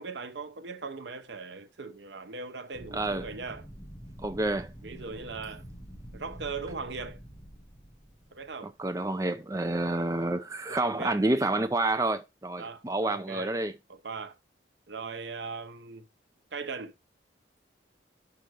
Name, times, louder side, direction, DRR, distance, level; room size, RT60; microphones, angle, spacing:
voice 1, 0.0-3.7 4.8-5.6 6.1-7.2 8.3-8.7 10.7-11.2 12.6-13.6 13.9-14.4 14.9-16.1 16.5-16.9, right 4 dB, 75° right, 0.9 m, -39 dB
sound 1, 2.7-8.9, equal, 20° left, 1.9 m, -47 dB
voice 2, 2.9-3.2 4.2-4.7 8.8-13.7, right 2 dB, 20° right, 0.4 m, -29 dB
5.8 x 5.2 x 4.9 m
head